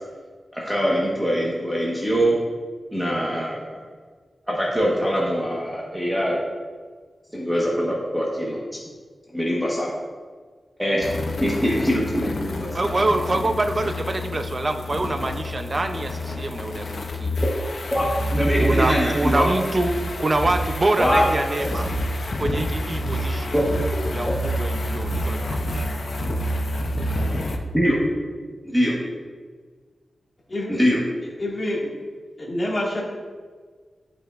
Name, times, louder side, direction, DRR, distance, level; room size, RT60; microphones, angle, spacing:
voice 1, 0.5-2.4 2.9-3.8 4.5-6.4 7.3-8.6 9.3-9.9 10.8-11.1 11.4-12.9 17.9-19.5 21.0-21.3 23.5-23.6 23.9-24.0 27.7-28.0 28.7-28.9 30.7-31.0, equal, ahead, -5 dB, 1.3 m, -23 dB
sound 1, 11.0-27.6, equal, 60° left, 0.7 m, -28 dB
voice 2, 12.7-17.4 18.6-21.9 22.4-23.6 24.1-25.8, right 2 dB, 35° right, 6 dB, 0.6 m, -25 dB
voice 3, 31.4-32.0 32.4-33.0, left 1 dB, 35° left, -5 dB, 2.0 m, -27 dB
11.0 x 5.5 x 2.5 m, 1.5 s
wide cardioid pair, 95°, 0 cm